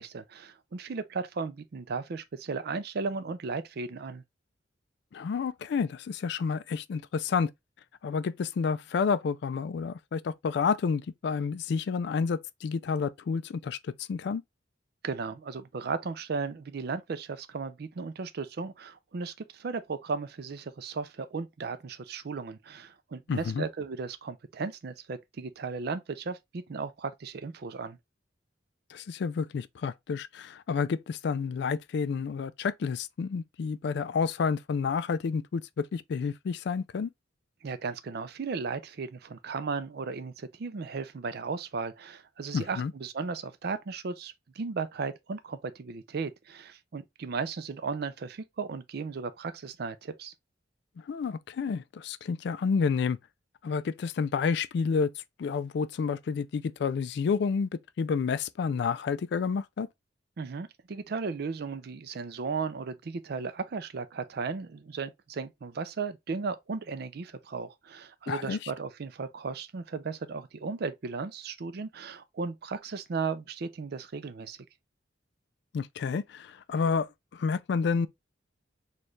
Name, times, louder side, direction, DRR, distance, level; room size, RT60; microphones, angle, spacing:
voice 1, 0.0-4.2 15.0-28.0 37.6-50.3 60.4-74.6, right 4 dB, 55° right, 0.4 m, -35 dB
voice 2, 5.1-7.5 8.0-14.4 23.3-23.6 28.9-37.1 42.5-42.9 51.1-53.2 53.6-57.7 58.0-59.9 68.3-68.7 75.7-78.1, left 5 dB, 65° left, 0.3 m, -30 dB
4.3 x 2.3 x 3.1 m
head